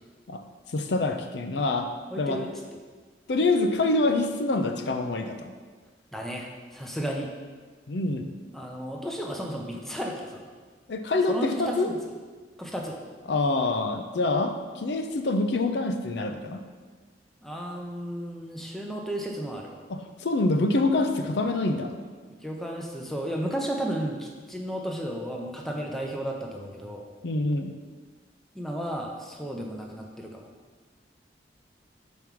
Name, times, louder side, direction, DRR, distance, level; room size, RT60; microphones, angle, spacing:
voice 1, 0.7-1.9 2.2-2.4 3.3-5.5 7.9-8.3 10.9-11.9 13.3-16.6 19.9-22.0 27.2-27.8, left 2 dB, 75° left, 6 dB, 0.5 m, -26 dB
voice 2, 2.1-2.5 6.1-7.3 8.5-10.5 11.3-12.0 12.6-13.0 17.4-19.7 22.4-27.1 28.5-30.5, equal, ahead, 0 dB, 0.6 m, -33 dB
5.3 x 4.7 x 6.0 m, 1.5 s
head